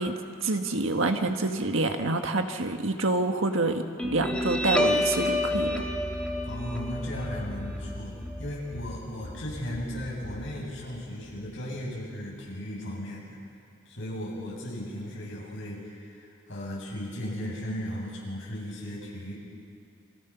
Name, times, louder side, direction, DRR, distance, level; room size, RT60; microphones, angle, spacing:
voice 1, 0.0-5.8, right 2 dB, 70° right, 5 dB, 1.6 m, -27 dB
Guitar, 4.0-11.0, left 1 dB, 5° left, 1.4 m, -30 dB
voice 2, 6.4-13.4 13.8-19.3, equal, 60° left, -4 dB, 7.9 m, -36 dB
29.5 x 24.0 x 6.0 m, 2.3 s
head